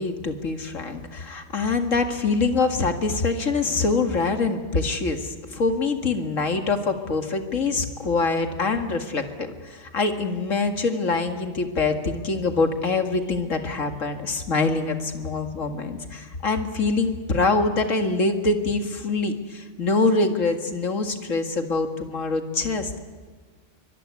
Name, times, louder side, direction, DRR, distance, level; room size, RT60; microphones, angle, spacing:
voice 1, 0.0-23.0, left 3 dB, 90° left, 6 dB, 2.3 m, -24 dB
23.5 x 22.5 x 9.6 m, 1.5 s
omnidirectional pair, 1.3 m